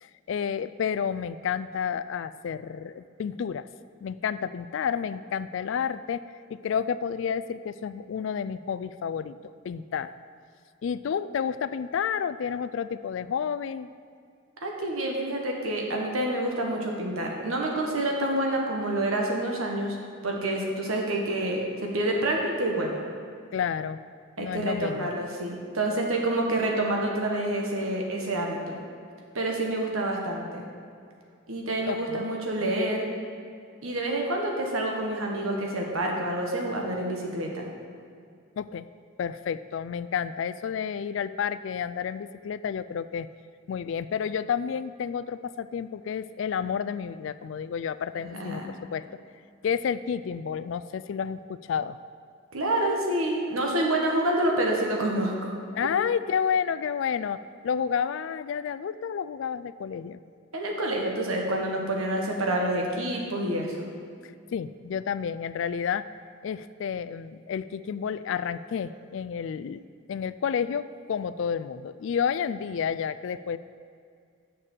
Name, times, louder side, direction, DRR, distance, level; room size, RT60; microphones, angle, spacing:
voice 1, 0.0-3.7 4.0-6.2 6.5-10.1 10.8-13.9 23.5-24.0 24.4-25.1 31.9-32.3 38.6-38.9 39.2-43.3 43.7-49.1 49.6-52.0 55.7-60.2 64.2-66.1 66.4-69.8 70.1-73.6, left 7 dB, 60° left, 14 dB, 0.3 m, -30 dB
voice 2, 14.6-20.0 20.2-23.0 24.4-28.8 29.3-30.6 31.5-33.1 33.8-37.7 48.3-48.7 52.5-55.5 55.8-55.9 60.5-63.9, right 1 dB, 85° right, 0 dB, 1.4 m, -28 dB
6.8 x 6.6 x 7.3 m, 2.3 s
head